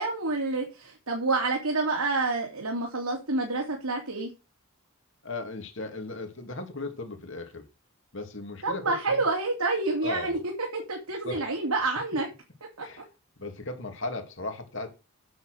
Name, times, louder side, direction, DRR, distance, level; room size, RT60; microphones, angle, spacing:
voice 1, 0.0-4.3 8.6-12.3 12.8-12.9, right 3 dB, 85° right, 0 dB, 2.9 m, -28 dB
voice 2, 5.2-7.6 8.1-9.2 10.0-10.4 11.2-11.5 12.8-13.1 13.4-15.0, left 2 dB, 55° left, 5 dB, 2.7 m, -37 dB
9.1 x 7.0 x 6.4 m, 0.28 s
head